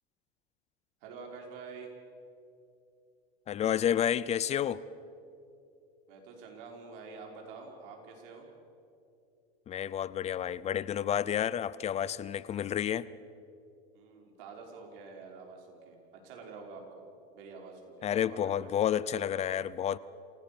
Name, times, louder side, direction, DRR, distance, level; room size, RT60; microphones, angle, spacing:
voice 1, 1.0-1.9 6.1-8.5 13.9-16.0 16.2-17.1 17.3-18.7, right 4 dB, 65° right, 1 dB, 5.4 m, -47 dB
voice 2, 3.5-4.8 9.7-13.1 18.0-20.0, left 10 dB, 20° left, 19 dB, 0.5 m, -30 dB
27.5 x 17.0 x 7.0 m, 2.6 s
supercardioid pair, 130°, 30 cm